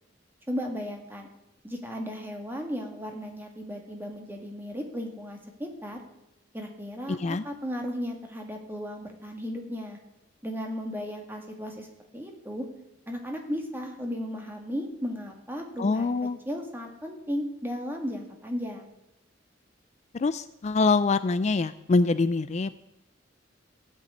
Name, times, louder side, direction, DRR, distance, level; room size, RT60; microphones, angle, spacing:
voice 1, 0.5-1.3 1.6-6.0 6.5-10.0 10.4-11.9 12.1-12.7 13.1-16.1 16.5-18.9, equal, 10° right, 2 dB, 2.1 m, -35 dB
voice 2, 7.1-7.4 15.8-16.4 20.1-22.7, left 3 dB, 35° left, 13 dB, 0.4 m, -25 dB
15.0 x 6.8 x 9.5 m, 0.90 s
head